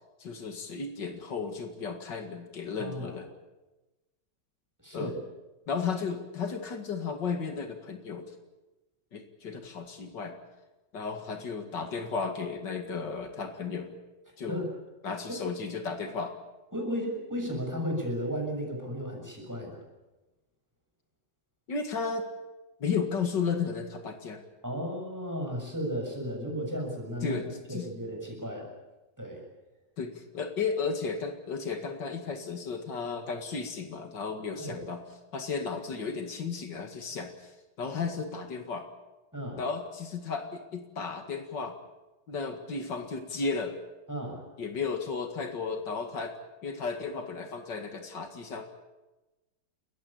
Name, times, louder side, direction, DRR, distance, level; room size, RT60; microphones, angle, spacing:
voice 1, 0.2-3.3 4.9-5.1 5.7-8.3 9.1-10.4 10.9-13.9 14.4-14.7 15.0-16.3 21.7-22.3 22.8-24.4 27.2-27.9 30.0-35.0 35.3-37.5 37.8-38.8 39.6-41.7 42.3-43.8 44.6-46.3 46.6-48.6, left 5 dB, 85° left, 6 dB, 2.7 m, -34 dB
voice 2, 2.8-3.2 4.8-5.2 14.5-14.7 16.7-19.8 24.6-28.7 29.2-29.4 34.6-34.8 39.3-39.6 44.1-44.4, equal, 10° right, 0 dB, 6.8 m, -34 dB
30.0 x 14.5 x 8.6 m, 1.1 s
omnidirectional pair, 1.9 m